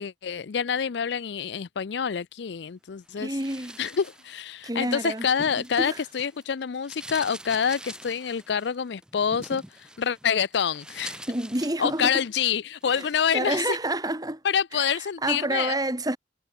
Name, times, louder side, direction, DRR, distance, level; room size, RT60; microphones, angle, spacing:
voice 1, 0.0-3.4 3.8-11.2 11.8-13.8 14.4-15.7, left 7 dB, 65° left, 0.4 m, -27 dB
voice 2, 3.2-3.8 4.6-5.3 5.8-6.0 11.3-12.1 12.9-13.1 13.3-14.4 14.7-14.9 15.2-16.2, right 1 dB, 20° right, 2.4 m, -28 dB
sound 1, 3.3-6.4 6.7-12.4 12.8-13.2, right 1 dB, 5° right, 5.7 m, -45 dB
head